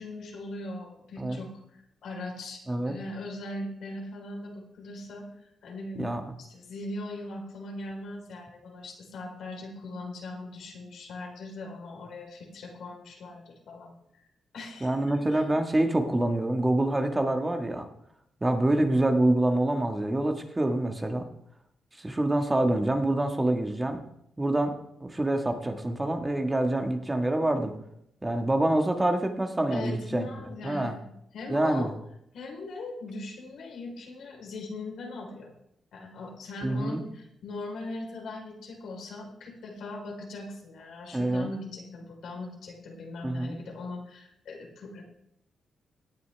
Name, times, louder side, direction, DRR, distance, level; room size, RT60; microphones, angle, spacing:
voice 1, 0.0-5.3 5.6-6.1 6.4-14.2 14.5-15.4 29.7-31.0 31.3-31.9 32.3-35.5 35.9-45.0, left 2 dB, 80° left, 0 dB, 4.0 m, -40 dB
voice 2, 14.8-17.9 18.4-21.3 22.0-24.0 24.4-27.8 28.2-30.3 30.6-30.9 31.5-31.9 36.6-37.0 41.1-41.5 43.2-43.6, right 1 dB, 20° right, 5 dB, 1.6 m, -26 dB
17.5 x 9.6 x 3.4 m, 0.76 s
cardioid pair, 90°, 0 cm